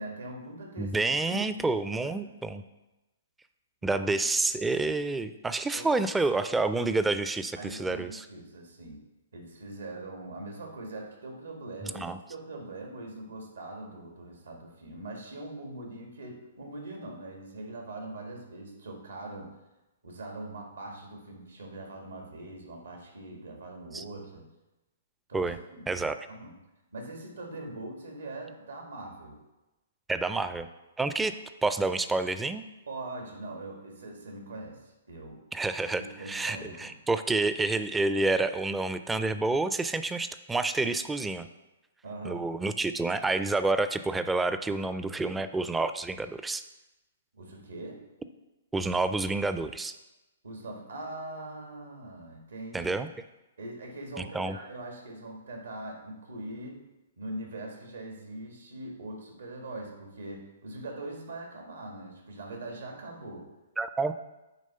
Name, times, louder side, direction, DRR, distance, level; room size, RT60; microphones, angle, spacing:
voice 1, 0.0-1.7 2.0-2.3 3.9-4.0 5.7-5.9 6.8-6.9 7.6-9.0 9.3-19.5 20.0-24.4 25.3-25.9 26.3-26.5 26.9-29.4 32.9-35.4 35.8-36.9 42.0-42.4 47.3-48.0 50.4-52.9 53.6-56.8 57.2-63.5, right 2 dB, 85° right, 1 dB, 1.7 m, -42 dB
voice 2, 0.8-2.6 3.8-8.2 11.8-12.2 23.9-24.0 25.3-25.6 25.9-26.2 30.1-30.7 31.0-31.3 31.6-32.6 35.5-41.5 42.2-46.6 48.7-49.9 52.7-53.1 54.2-54.6 63.8-64.1, right 3 dB, 10° right, 11 dB, 0.3 m, -29 dB
9.1 x 3.1 x 5.5 m, 1.0 s
hypercardioid pair, 135°, 0 cm